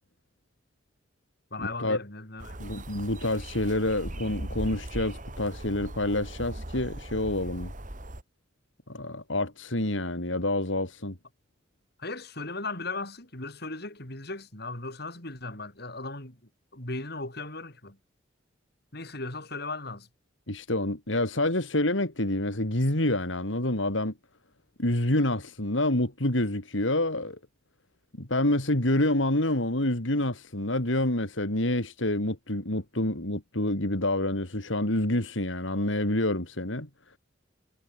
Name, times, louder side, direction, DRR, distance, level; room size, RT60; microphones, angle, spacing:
voice 1, 1.5-2.6 12.0-16.4 16.7-18.0 18.9-20.1, left 3 dB, 55° left, 6.3 m, -37 dB
sound 1, 2.4-8.2, right 1 dB, 40° right, 2.9 m, -39 dB
voice 2, 2.6-7.7 8.9-11.2 20.5-24.1 24.8-27.4 28.2-36.9, left 1 dB, 75° left, 4.1 m, -27 dB
head